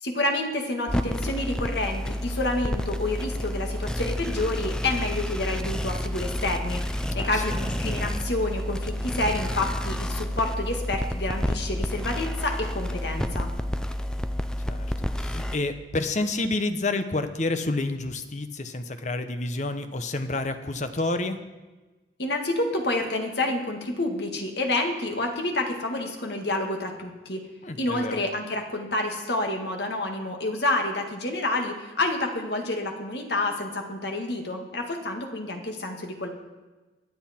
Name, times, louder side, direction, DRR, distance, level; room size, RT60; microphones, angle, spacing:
voice 1, 0.0-13.5 22.2-27.4 27.8-36.3, left 2 dB, 65° left, 3 dB, 1.9 m, -29 dB
sound 1, 0.9-15.6, equal, 5° left, 0.5 m, -30 dB
voice 2, 7.1-7.5 14.7-21.4 27.6-28.2, left 2 dB, 40° left, 9 dB, 0.9 m, -29 dB
22.5 x 8.0 x 4.4 m, 1.2 s
head